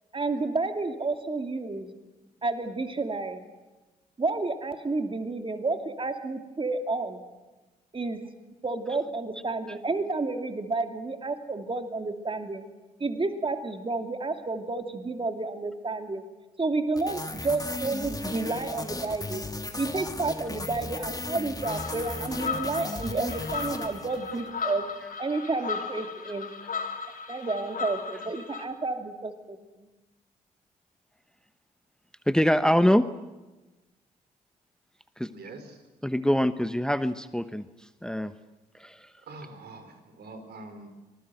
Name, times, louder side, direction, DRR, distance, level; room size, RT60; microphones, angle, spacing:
voice 1, 0.1-1.9 2.4-3.4 4.2-7.2 7.9-8.2 8.6-12.7 13.0-16.2 16.6-19.4 19.8-24.8 25.2-26.5 27.3-29.9, right 3 dB, 30° right, 6 dB, 2.7 m, -30 dB
sound 1, 17.0-24.5, left 2 dB, 20° left, 2.9 m, -36 dB
sound 2, 21.6-28.7, left 5 dB, 50° left, 4.1 m, -36 dB
voice 2, 32.3-33.0 35.2-35.3 36.0-37.6 38.0-38.3 38.8-39.1, equal, 5° left, 12 dB, 1.1 m, -24 dB
voice 3, 35.3-35.8 39.2-40.9, right 2 dB, 65° right, 7 dB, 4.5 m, -44 dB
25.5 x 20.0 x 7.9 m, 1.1 s
hypercardioid pair, 40°, 18 cm